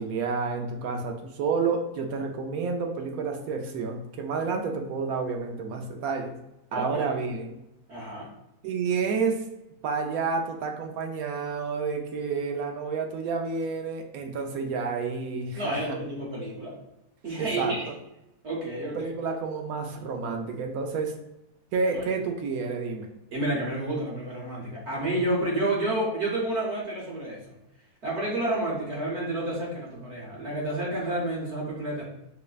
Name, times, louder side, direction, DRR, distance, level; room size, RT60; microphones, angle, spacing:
voice 1, 0.0-6.3 6.7-7.5 8.6-9.4 9.8-16.0 17.4-17.8 18.9-21.1 21.7-23.1, right 5 dB, 75° right, 3 dB, 1.0 m, -30 dB
voice 2, 6.7-7.1 7.9-8.3 15.5-16.8 17.2-17.9 18.4-19.0 21.9-22.0 23.3-27.5 28.0-32.0, right 1 dB, 55° right, -4 dB, 1.1 m, -30 dB
4.8 x 2.1 x 2.3 m, 0.89 s
omnidirectional pair, 1.6 m